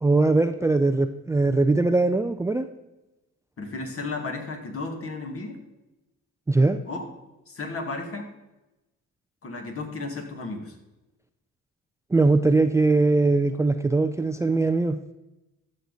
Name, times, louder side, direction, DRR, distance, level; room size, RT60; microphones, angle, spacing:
voice 1, 0.0-2.7 6.5-6.8 12.1-15.0, right 3 dB, 10° right, 9 dB, 0.4 m, -21 dB
voice 2, 3.6-5.6 6.9-7.1 7.5-8.3 9.4-10.8, left 3 dB, 50° left, 4 dB, 2.0 m, -34 dB
12.5 x 6.5 x 4.1 m, 0.98 s
cardioid pair, 90°, 30 cm